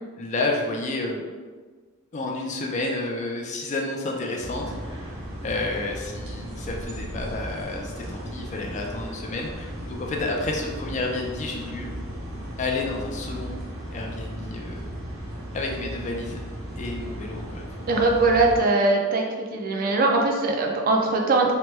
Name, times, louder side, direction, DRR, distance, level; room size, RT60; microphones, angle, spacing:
voice 1, 0.2-1.2 2.1-5.1 5.4-11.9 12.6-13.6 13.9-14.9 15.5-16.4 16.8-17.7, left 2 dB, 35° left, 0 dB, 0.4 m, -30 dB
sound 1, 4.4-18.6, equal, 70° right, 0.8 m, -36 dB
voice 2, 17.9-19.2 19.5-21.5, right 3 dB, 40° right, 1 dB, 0.4 m, -21 dB
2.9 x 2.2 x 3.1 m, 1.5 s
head